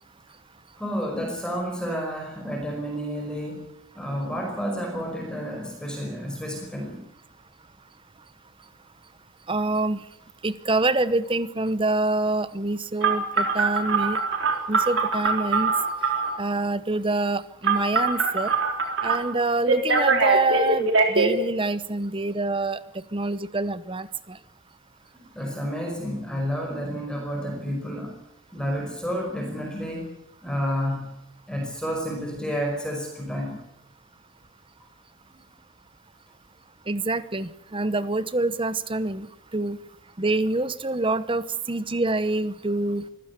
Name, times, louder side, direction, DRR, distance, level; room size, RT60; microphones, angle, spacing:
voice 1, 0.8-3.7 3.9-7.0 25.1-28.2 28.5-30.1 30.4-31.1 31.5-33.6, equal, 5° left, 1 dB, 5.1 m, -30 dB
voice 2, 9.5-10.0 10.4-14.2 14.7-15.7 16.4-18.5 19.0-22.8 23.1-24.4 36.9-39.3 39.5-39.8 40.2-43.1, right 2 dB, 25° right, 15 dB, 0.9 m, -26 dB
Telephone, 13.0-16.4 17.6-19.2 19.7-21.3, right 4 dB, 65° right, 3.9 m, -22 dB
25.0 x 16.0 x 8.2 m, 0.87 s
head